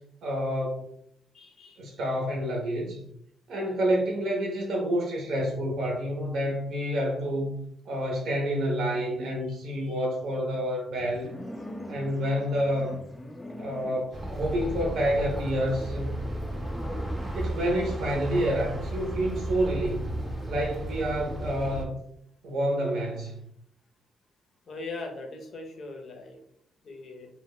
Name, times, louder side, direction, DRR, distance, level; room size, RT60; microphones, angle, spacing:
voice 1, 0.2-0.9 1.8-3.0 3.5-7.5 7.9-11.3 11.9-13.0 13.6-16.1 17.3-20.1 20.5-22.0 22.4-23.4, equal, 70° right, -1 dB, 0.6 m, -28 dB
voice 2, 1.3-1.8 24.7-26.4 26.8-27.3, left 3 dB, 50° left, 3 dB, 0.6 m, -40 dB
sound 1, 10.9-17.3, left 1 dB, 15° left, 0.3 m, -43 dB
sound 2, 14.1-21.9, right 1 dB, 15° right, 0.7 m, -34 dB
2.2 x 2.1 x 3.5 m, 0.73 s
cardioid pair, 90°, 0 cm